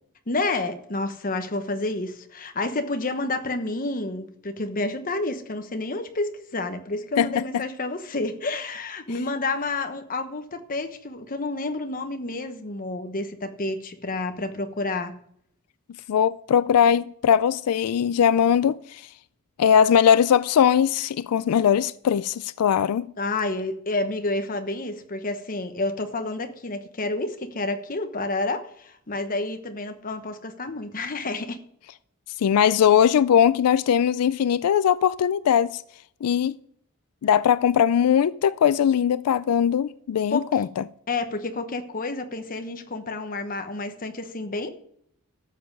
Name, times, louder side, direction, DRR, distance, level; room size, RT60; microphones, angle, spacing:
voice 1, 0.3-15.1 23.2-31.6 40.3-40.6 41.1-44.7, left 2 dB, 40° left, 1.1 m, -29 dB
voice 2, 16.1-19.0 19.6-23.1 32.4-35.8 36.2-36.6 37.2-40.8, left 8 dB, 90° left, 0.4 m, -20 dB
13.0 x 7.4 x 5.4 m
head